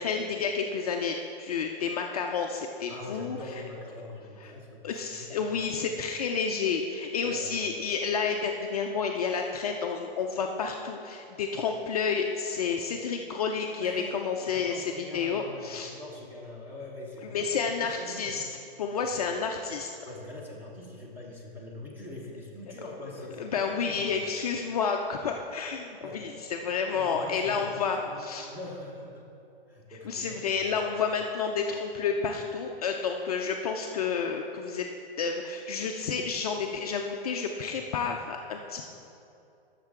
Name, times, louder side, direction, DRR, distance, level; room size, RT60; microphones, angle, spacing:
voice 1, 0.0-3.6 4.4-4.5 4.8-15.9 17.3-18.4 18.8-19.9 23.4-28.5 30.1-34.9 35.2-38.9, left 5 dB, 40° left, 2 dB, 0.5 m, -30 dB
voice 2, 2.9-4.8 5.1-5.4 5.7-6.0 7.2-7.6 13.7-18.5 20.0-24.3 26.0-26.3 26.9-28.3 28.5-29.3 29.7-30.8, left 1 dB, 5° right, -4 dB, 1.2 m, -43 dB
13.5 x 6.6 x 3.7 m, 2.8 s
hypercardioid pair, 155°, 31 cm